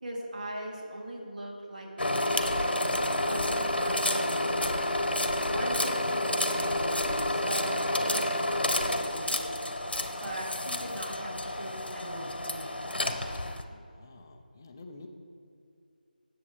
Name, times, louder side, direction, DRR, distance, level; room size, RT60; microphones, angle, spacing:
voice 1, 0.0-4.7 5.1-9.5 10.2-12.8, right 1 dB, 55° right, -3 dB, 3.0 m, -40 dB
sound 1, 2.0-13.6, left 1 dB, 90° left, 1.2 m, -29 dB
voice 2, 13.7-15.1, left 3 dB, 20° left, 5 dB, 0.6 m, -49 dB
18.5 x 7.5 x 3.3 m, 2.5 s
figure-of-eight pair, 170°, 5 cm